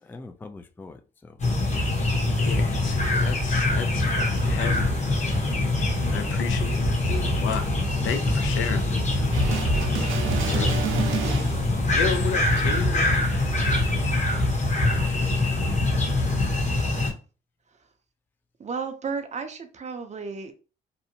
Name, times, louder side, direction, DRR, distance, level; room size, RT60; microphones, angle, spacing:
voice 1, 0.0-1.4 9.2-10.1, left 3 dB, 10° left, 0.3 m, -44 dB
sound 1, 1.4-17.1, left 2 dB, 35° left, 0.9 m, -24 dB
voice 2, 2.4-5.2 6.1-7.6 8.0-9.3 10.4-10.8 11.9-13.1, left 7 dB, 75° left, 0.5 m, -33 dB
sound 2, 9.3-11.9 12.8-12.9, right 4 dB, 85° right, 0.6 m, -28 dB
voice 3, 18.6-20.5, right 5 dB, 35° right, 0.5 m, -33 dB
2.7 x 2.0 x 2.7 m
cardioid pair, 90°, 20 cm